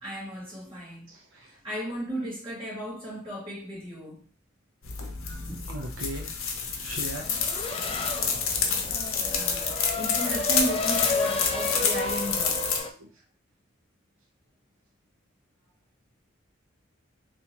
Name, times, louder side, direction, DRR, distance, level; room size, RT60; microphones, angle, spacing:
voice 1, 0.0-1.1 1.5-4.2 5.5-5.7 9.2-12.9, right 1 dB, 25° right, 1.9 m, -35 dB
voice 2, 1.1-1.5 5.7-6.3 6.7-7.2 13.0-13.1, right 1 dB, 75° right, 0.6 m, -38 dB
sound 1, 4.8-12.8, left 5 dB, 75° left, 0.7 m, -29 dB
Race car auto racing / Accelerating revving vroom, 7.2-12.9, left 3 dB, 25° left, 0.3 m, -32 dB
3.4 x 2.6 x 2.9 m
head